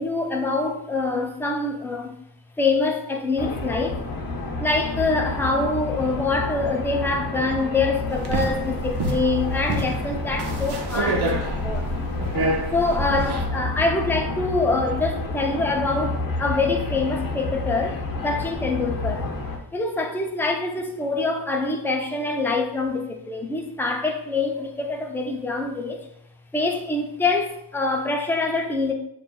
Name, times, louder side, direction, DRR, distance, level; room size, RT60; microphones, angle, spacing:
voice 1, 0.0-2.2 2.6-4.0 4.6-11.9 12.7-19.3 19.7-26.1 26.5-28.9, left 3 dB, 5° left, 0.4 m, -25 dB
sound 1, 3.4-19.6, left 3 dB, 50° left, 0.8 m, -30 dB
sound 2, 8.1-13.5, right 2 dB, 65° right, 0.8 m, -27 dB
6.6 x 2.5 x 2.3 m
cardioid pair, 105°, 43 cm